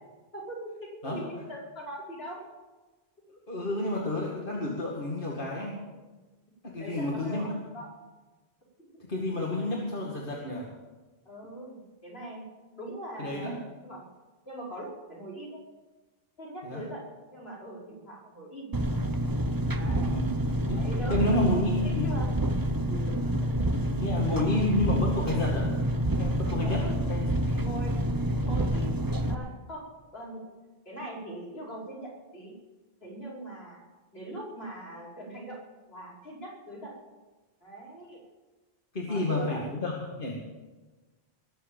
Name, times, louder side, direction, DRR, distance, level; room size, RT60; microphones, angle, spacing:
voice 1, 0.3-2.4 6.8-7.9 11.3-12.4 12.8-14.0 14.5-15.6 16.4-17.0 17.3-18.7 19.7-20.2 20.7-22.3 22.9-23.7 26.6-26.9 27.6-28.0 28.4-30.4 30.8-32.5 33.0-33.8 34.1-35.6 35.9-36.9 37.6-38.2 39.1-39.6, right 1 dB, 75° left, -5 dB, 5.6 m, -41 dB
voice 2, 3.3-5.8 6.6-7.6 9.1-10.7 13.2-13.5 16.6-16.8 19.9-20.3 20.7-20.8 21.1-22.1 24.0-25.7 26.2-26.8 27.1-27.6 38.9-40.4, left 2 dB, 55° left, -3 dB, 2.4 m, -30 dB
Engine, 18.7-29.3, right 1 dB, 25° right, 0.8 m, -28 dB
21.0 x 7.9 x 7.3 m, 1.2 s
omnidirectional pair, 1.1 m